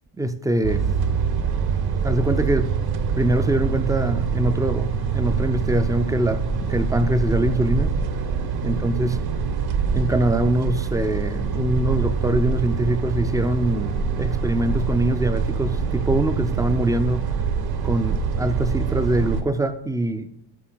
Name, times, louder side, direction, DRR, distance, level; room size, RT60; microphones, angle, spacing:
voice 1, 0.2-0.9 2.0-2.7 3.2-6.4 6.7-7.9 8.6-9.2 9.9-17.3 17.8-20.3, right 1 dB, 5° right, 11 dB, 0.5 m, -23 dB
sound 1, 0.6-19.4, right 5 dB, 50° right, 1.2 m, -24 dB
13.0 x 5.6 x 4.0 m, 0.79 s
cardioid pair, 115°, 49 cm